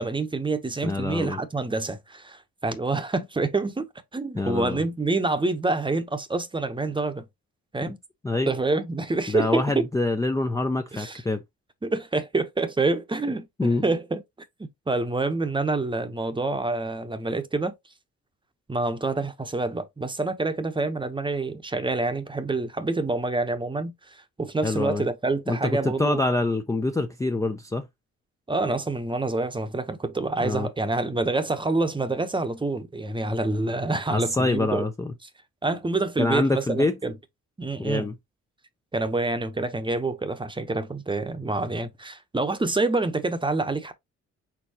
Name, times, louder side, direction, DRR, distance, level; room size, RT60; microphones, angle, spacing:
voice 1, 0.0-7.3 7.7-8.0 8.5-9.8 10.9-11.2 11.8-14.2 14.6-17.7 18.7-26.2 28.5-34.9 35.6-37.1 37.6-38.1 38.9-43.9, right 3 dB, 15° right, 0.8 m, -27 dB
voice 2, 0.8-1.4 4.4-4.8 8.2-8.5 9.3-11.4 13.6-13.8 24.6-25.0 25.5-27.9 30.4-30.7 34.1-35.1 36.2-37.0 37.8-38.1, left 2 dB, 10° left, 0.5 m, -25 dB
4.5 x 3.9 x 2.8 m
cardioid pair, 90°, 30 cm